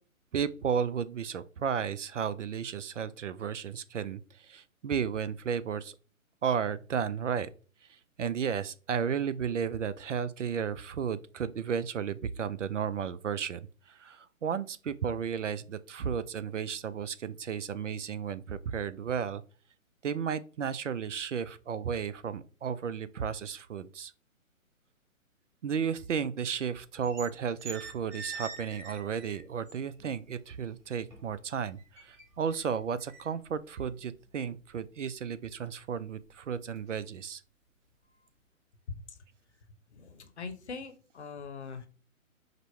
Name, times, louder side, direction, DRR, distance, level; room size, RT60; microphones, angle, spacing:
voice 1, 0.3-4.2 4.5-5.9 6.4-7.5 8.2-13.6 14.0-19.4 20.0-24.1 25.6-37.4, right 7 dB, 60° right, 0.5 m, -33 dB
sound 1, 26.8-27.3 27.6-30.1 30.5-31.4 31.8-34.9 35.3-35.5 36.0-36.4 36.8-37.0, right 4 dB, 25° right, 1.6 m, -45 dB
voice 2, 38.9-39.2 39.9-41.9, left 5 dB, 50° left, 0.9 m, -42 dB
5.1 x 2.1 x 4.3 m
figure-of-eight pair, 135°, 42 cm